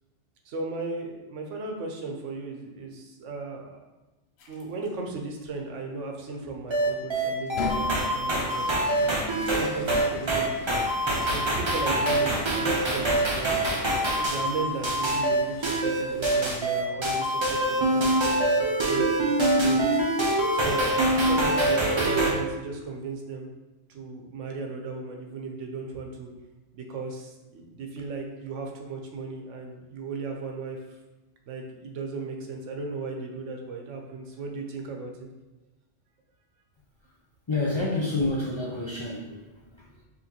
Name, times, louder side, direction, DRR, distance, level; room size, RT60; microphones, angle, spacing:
voice 1, 0.4-3.8 4.5-10.6 11.2-13.8 14.1-20.0 20.5-20.9 21.2-23.5 23.9-26.3 26.7-31.0 31.5-35.3, right 3 dB, 90° right, 2 dB, 1.1 m, -36 dB
sound 1, 4.4-4.9 5.6-5.7 7.4-16.3, left 2 dB, 65° left, 0.8 m, -40 dB
sound 2, 6.7-22.3, right 1 dB, 30° right, 0.6 m, -24 dB
voice 2, 37.5-40.0, left 2 dB, 35° left, -5 dB, 0.5 m, -29 dB
5.6 x 3.0 x 2.9 m, 1.1 s
omnidirectional pair, 1.2 m